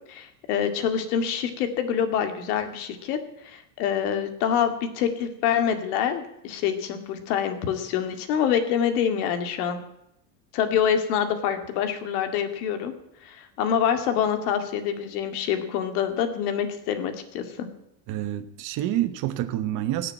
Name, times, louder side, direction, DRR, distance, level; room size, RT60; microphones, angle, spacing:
voice 1, 0.1-9.8 10.5-12.9 13.2-17.7, left 8 dB, 60° left, 7 dB, 2.4 m, -26 dB
voice 2, 18.1-20.1, right 13 dB, 40° right, 9 dB, 1.0 m, -28 dB
17.5 x 6.9 x 8.9 m, 0.80 s
supercardioid pair, 140°, 49 cm